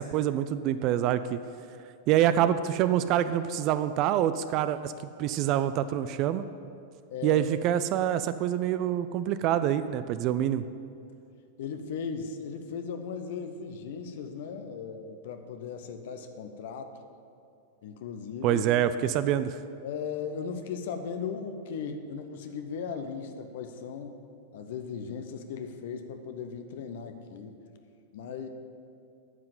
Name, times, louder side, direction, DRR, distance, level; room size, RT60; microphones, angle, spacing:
voice 1, 0.0-1.4 2.1-4.9 5.2-6.4 7.2-10.6 18.4-19.6, right 11 dB, 40° right, 12 dB, 0.4 m, -26 dB
voice 2, 7.1-7.5 11.6-16.9 17.8-18.6 19.8-24.2 24.5-27.6 28.1-28.5, left 6 dB, 55° left, 7 dB, 0.8 m, -37 dB
9.5 x 5.8 x 7.6 m, 2.5 s
figure-of-eight pair, 95°, 0 cm